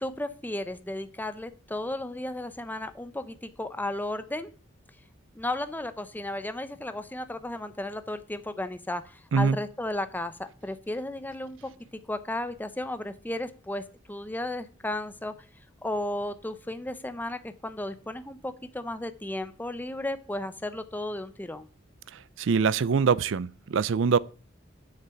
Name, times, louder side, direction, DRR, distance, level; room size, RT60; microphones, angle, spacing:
voice 1, 0.0-4.5 5.3-11.7 12.1-15.3 15.8-21.7, left 1 dB, 10° left, 0.6 m, -34 dB
voice 2, 22.4-24.2, right 5 dB, 70° right, 0.4 m, -23 dB
7.8 x 6.6 x 6.9 m
head